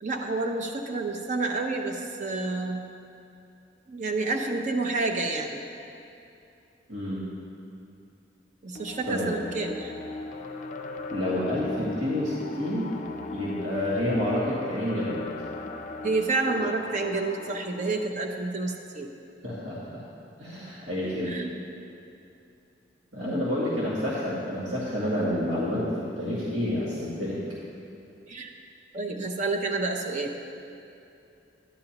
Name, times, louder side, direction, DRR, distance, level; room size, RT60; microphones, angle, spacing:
voice 1, 0.0-2.8 3.9-5.7 8.6-9.9 16.0-19.1 21.0-21.6 28.3-28.5 28.9-30.4, right 3 dB, 40° right, 3 dB, 0.7 m, -29 dB
voice 2, 6.9-7.2 9.1-9.3 11.1-12.9 13.3-15.2 19.4-20.0 20.4-21.3 23.1-27.4, left 1 dB, 90° right, -8 dB, 2.0 m, -29 dB
sound 1, 8.7-18.1, left 2 dB, 45° left, 0.5 m, -38 dB
11.5 x 10.0 x 3.0 m, 2.7 s
head